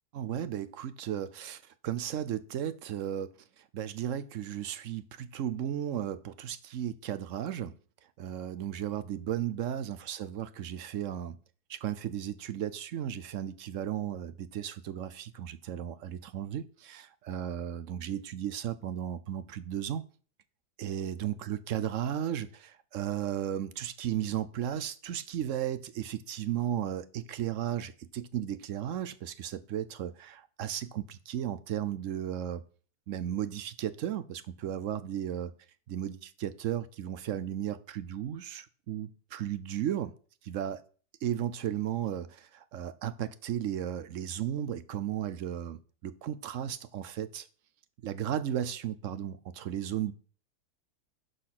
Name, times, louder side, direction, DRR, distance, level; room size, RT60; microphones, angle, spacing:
voice 1, 0.1-7.7 8.2-11.4 11.7-20.0 20.8-32.6 33.1-35.5 35.9-40.1 40.4-40.8 41.2-47.5 48.0-50.1, right 10 dB, 65° right, 0.8 m, -35 dB
11.5 x 4.2 x 5.9 m
omnidirectional pair, 1.7 m